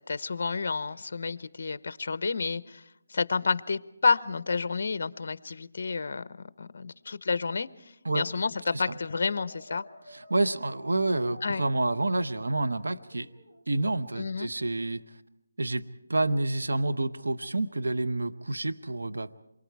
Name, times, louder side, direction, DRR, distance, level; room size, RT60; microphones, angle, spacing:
voice 1, 0.0-2.8 3.1-9.8 11.4-11.6 14.2-14.5, left 4 dB, 55° left, 16 dB, 0.8 m, -30 dB
Brass instrument, 8.8-11.6 13.1-13.7, left 1 dB, 50° right, 5.7 m, -51 dB
voice 2, 10.1-13.3 13.7-15.2 15.6-19.3, right 2 dB, 90° right, 10 dB, 0.9 m, -28 dB
27.5 x 23.5 x 4.6 m, 0.91 s
hypercardioid pair, 165°, 0 cm